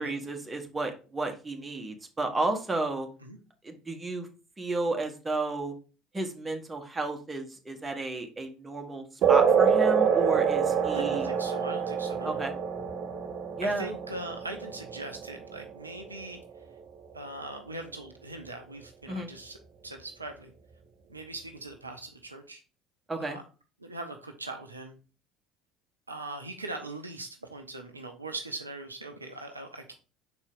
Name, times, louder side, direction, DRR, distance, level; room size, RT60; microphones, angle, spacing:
voice 1, 0.0-3.1 3.6-4.3 4.6-5.7 6.1-11.3 12.2-12.5 13.6-13.9 19.1-19.3 23.1-23.4, right 2 dB, 15° right, 3 dB, 1.4 m, -32 dB
sound 1, 9.2-16.2, right 7 dB, 50° right, 0.9 m, -26 dB
voice 2, 10.8-12.4 13.6-16.4 17.1-19.6 19.8-20.5 21.1-22.6 23.2-23.4 23.8-25.0 26.1-29.9, right 2 dB, 90° right, 5 dB, 0.7 m, -41 dB
5.9 x 4.4 x 3.7 m, 0.34 s
figure-of-eight pair, 65°, 0 cm